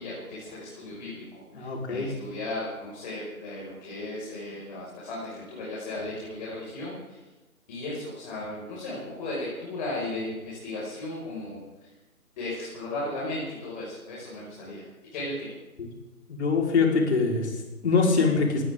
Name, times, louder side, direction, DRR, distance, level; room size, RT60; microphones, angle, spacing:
voice 1, 0.0-7.2 7.7-11.9 12.4-14.9 15.1-15.5, left 2 dB, 30° left, -6 dB, 5.9 m, -36 dB
voice 2, 1.6-2.1 15.8-15.9 16.3-18.6, left 4 dB, 45° left, 0 dB, 4.7 m, -24 dB
19.0 x 19.0 x 3.8 m, 1.2 s
figure-of-eight pair, 150°, 44 cm